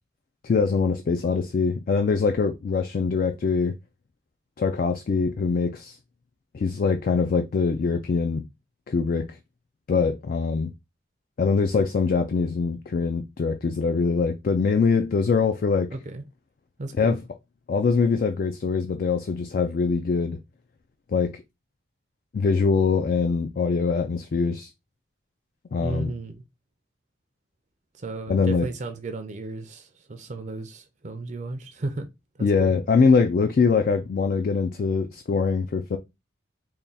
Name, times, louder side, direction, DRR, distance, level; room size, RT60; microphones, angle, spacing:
voice 1, 0.4-3.8 4.6-6.0 6.5-8.4 8.9-9.3 9.9-10.7 11.4-15.9 17.0-17.2 17.7-20.4 21.1-21.4 22.3-24.7 25.7-26.1 28.3-28.7 32.4-36.0, left 5 dB, 45° left, 0.3 m, -23 dB
voice 2, 15.9-16.2 16.8-17.2 25.8-26.3 28.0-32.1 32.4-32.7, right 2 dB, 40° right, 0.4 m, -34 dB
3.5 x 2.2 x 4.0 m
head